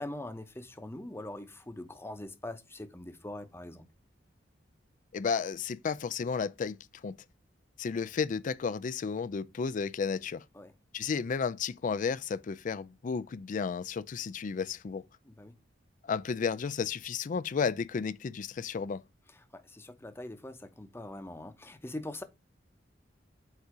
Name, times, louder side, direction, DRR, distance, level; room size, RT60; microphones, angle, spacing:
voice 1, 0.0-3.9 10.5-10.7 15.3-15.5 19.5-22.2, left 1 dB, 15° left, 0.8 m, -42 dB
voice 2, 5.1-6.8 7.0-7.2 7.8-10.4 10.9-15.0 16.0-19.0, left 5 dB, 45° left, 0.4 m, -33 dB
8.1 x 2.8 x 4.8 m
head